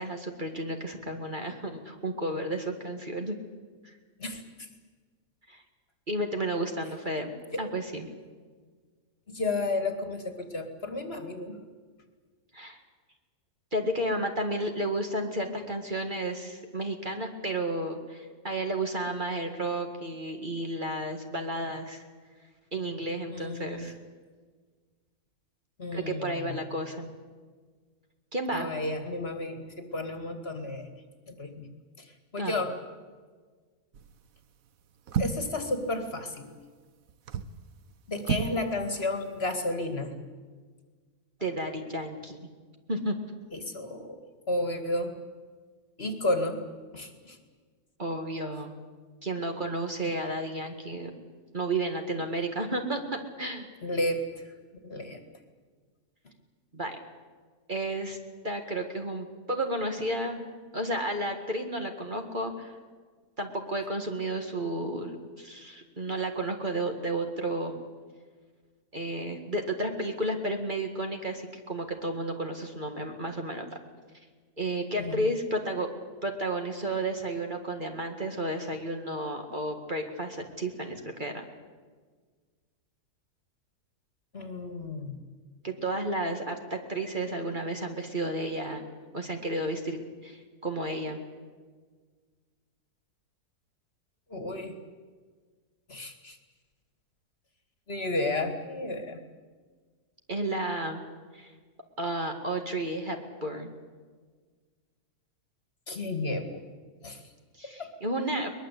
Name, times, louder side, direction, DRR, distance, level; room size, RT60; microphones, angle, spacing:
voice 1, 0.0-3.4 3.8-4.0 5.5-5.6 6.1-7.3 7.6-8.1 12.5-12.8 13.7-22.0 22.7-23.9 25.9-27.1 28.3-28.7 32.4-32.6 41.4-42.5 42.9-43.2 48.0-48.7 49.2-51.1 51.5-53.7 56.7-57.0 57.7-58.2 58.4-60.5 60.7-62.8 63.4-67.8 68.9-73.7 74.6-75.9 76.2-81.5 85.6-88.8 89.1-91.2 100.3-101.0 101.3-101.5 102.0-103.7 107.6-108.5, right 1 dB, 30° right, 4 dB, 2.0 m, -32 dB
voice 2, 4.2-4.7 7.5-7.6 9.3-11.6 23.3-23.9 25.8-26.6 28.5-30.9 31.3-31.7 32.0-32.7 35.2-36.5 38.1-40.1 43.5-44.2 44.5-45.1 46.0-46.6 46.9-47.4 53.8-54.2 54.8-55.2 74.9-75.2 84.3-85.2 94.3-94.8 95.9-96.4 97.9-99.2 105.9-106.6 107.0-107.2 107.8-107.9, left 2 dB, 40° left, 7 dB, 2.2 m, -32 dB
sound 1, 33.9-34.3 35.1-35.6 37.1-37.6 38.2-38.6 38.9-39.0, right 7 dB, 65° right, 1.3 m, -31 dB
22.5 x 21.0 x 8.3 m, 1.5 s
omnidirectional pair, 1.6 m